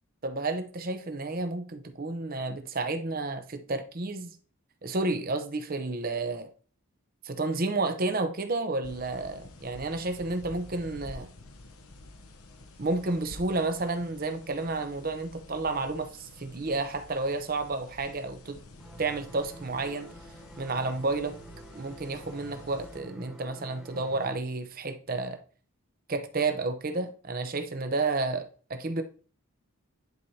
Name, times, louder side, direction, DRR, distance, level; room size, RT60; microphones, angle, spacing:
voice 1, 0.2-4.4 4.8-6.5 7.2-11.3 12.8-18.6 19.0-20.1 20.6-21.4 21.7-25.4 26.1-29.0, right 3 dB, 40° right, 0.7 m, -31 dB
sound 1, 8.8-23.0, left 2 dB, 90° left, 1.0 m, -50 dB
sound 2, 18.8-24.4, right 2 dB, ahead, 1.3 m, -48 dB
10.5 x 4.7 x 2.8 m
head